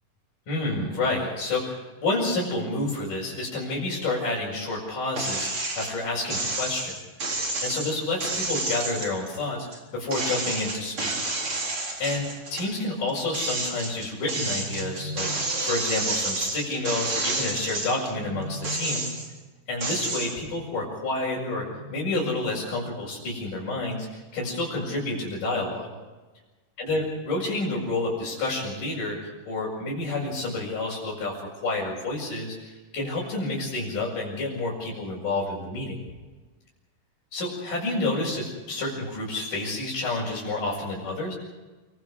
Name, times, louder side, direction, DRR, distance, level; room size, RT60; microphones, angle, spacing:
voice 1, 0.5-6.9 7.2-11.1 12.0-19.1 19.7-25.9 26.8-31.4 31.6-36.0 37.3-41.3, left 2 dB, 75° left, -7 dB, 7.9 m, -29 dB
sound 1, 5.2-5.9 6.3-9.8 10.1-12.7 13.1-18.1 18.5-19.4 19.8-20.3, right 2 dB, 40° right, 4.7 m, -30 dB
sound 2, 13.9-15.7 17.6-19.4 21.3-23.2, equal, 15° right, 3.8 m, -40 dB
29.0 x 24.5 x 5.0 m, 1.2 s
omnidirectional pair, 3.8 m